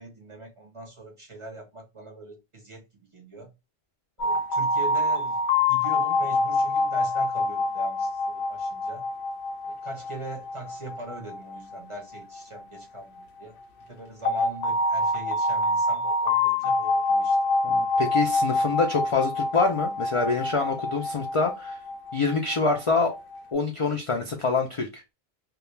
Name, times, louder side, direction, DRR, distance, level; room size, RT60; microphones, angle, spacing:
voice 1, 0.0-3.5 4.2-9.0 9.6-13.6 13.9-17.4 18.0-18.1, right 2 dB, 35° right, 0.5 m, -41 dB
sound 1, 4.2-13.0 14.2-23.4, left 2 dB, 90° left, 0.9 m, -26 dB
voice 2, 17.6-21.8 22.1-23.1 23.5-25.0, left 4 dB, 55° left, 0.3 m, -26 dB
2.3 x 2.1 x 3.0 m
omnidirectional pair, 1.1 m